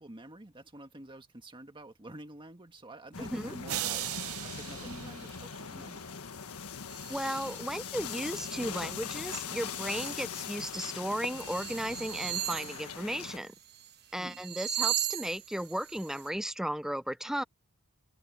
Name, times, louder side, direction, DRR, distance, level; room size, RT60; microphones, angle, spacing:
voice 1, 0.0-4.0 4.4-6.0 14.2-14.4, right 1 dB, 20° right, 1.8 m, -48 dB
sound 1, 3.1-13.4, left 6 dB, 80° left, 1.4 m, -41 dB
voice 2, 3.2-3.5 7.1-13.5 14.1-17.4, equal, ahead, 0.4 m, -35 dB
sound 2, 3.7-6.0, right 14 dB, 65° right, 0.6 m, -38 dB
sound 3, 6.9-7.6 8.0-8.6 9.0-10.2 10.7-10.9 11.2-13.9 14.2-16.3, right 12 dB, 50° right, 1.4 m, -38 dB
head